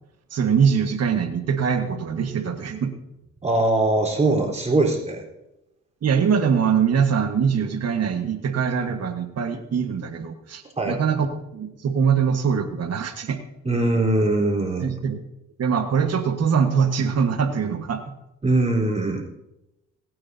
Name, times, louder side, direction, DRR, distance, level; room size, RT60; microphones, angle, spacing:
voice 1, 0.3-2.9 6.0-11.3 11.5-13.4 14.8-15.2 15.6-18.0, right 6 dB, 55° right, 6 dB, 1.5 m, -23 dB
voice 2, 3.4-5.2 10.8-11.0 13.6-14.9 18.4-19.2, right 2 dB, 20° right, -1 dB, 4.0 m, -21 dB
28.5 x 9.7 x 2.8 m, 0.92 s
cardioid pair, 90°, 30 cm